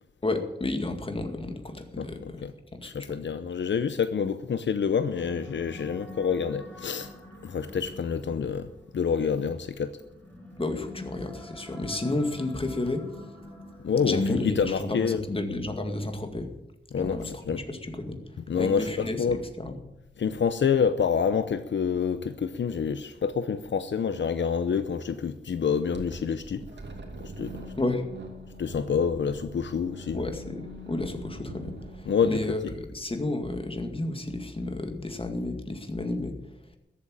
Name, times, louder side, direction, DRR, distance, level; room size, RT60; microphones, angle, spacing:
voice 1, 0.2-2.4 2.8-3.1 10.6-13.0 14.0-16.5 17.0-18.2 18.6-19.8 27.8-28.0 30.1-36.3, left 2 dB, 30° left, 2.1 m, -31 dB
voice 2, 2.0-2.5 2.8-7.1 7.4-10.0 13.8-15.2 16.9-17.6 18.5-19.4 20.2-26.6 27.4-27.5 28.6-30.2 32.1-32.4, left 6 dB, 90° left, 0.7 m, -27 dB
Creepy dream call, 4.8-14.7, left 1 dB, 10° left, 4.6 m, -46 dB
sound 1, 25.9-33.3, right 1 dB, 80° right, 2.6 m, -44 dB
14.0 x 8.7 x 8.8 m
wide cardioid pair, 95°, 18 cm